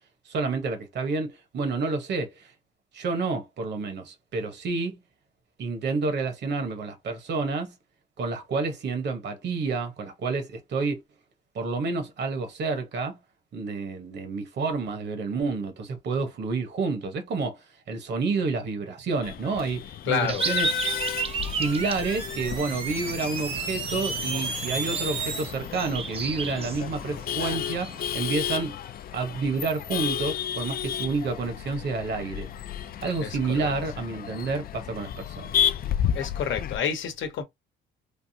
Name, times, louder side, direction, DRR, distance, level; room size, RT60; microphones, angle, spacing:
voice 1, 0.3-2.5 2.9-5.0 5.6-7.7 8.2-11.0 11.5-13.2 13.5-20.7 21.5-28.7 29.1-32.5 33.0-35.5, right 4 dB, 60° right, 1.1 m, -29 dB
Male speech man speaking / Laughter / Chatter, 19.2-36.8, left 10 dB, 50° left, 0.4 m, -32 dB
voice 2, 20.1-20.4 33.2-33.3 33.6-33.7 36.1-37.4, left 8 dB, 75° left, 0.9 m, -28 dB
sound 1, 20.3-28.1, right 5 dB, 30° right, 0.5 m, -34 dB
sound 2, 20.7-25.5, right 4 dB, 85° right, 1.8 m, -34 dB
3.4 x 2.0 x 2.7 m
cardioid pair, 90°, 20 cm